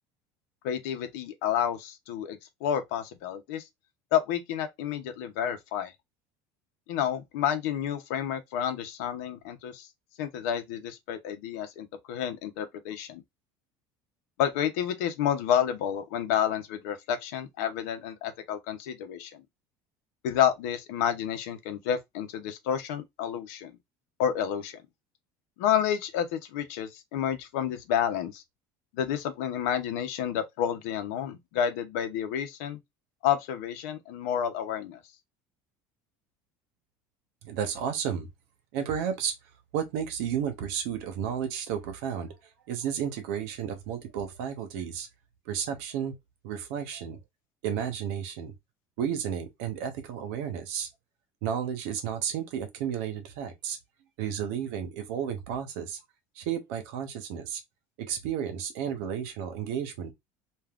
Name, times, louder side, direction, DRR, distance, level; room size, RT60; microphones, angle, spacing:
voice 1, 0.6-3.6 4.1-5.9 6.9-9.9 10.2-13.2 14.4-19.4 20.2-23.8 24.2-24.7 25.6-28.4 28.9-32.8 33.2-35.0, left 9 dB, 85° left, 0.7 m, -30 dB
voice 2, 37.4-38.3 38.7-39.3 39.7-42.3 42.7-45.1 45.5-46.1 46.4-47.2 47.6-48.5 49.0-50.9 51.4-53.8 54.2-56.0 56.4-57.6 58.0-60.1, right 8 dB, 80° right, 0.9 m, -32 dB
3.5 x 2.4 x 2.4 m
cardioid pair, 165°, 8 cm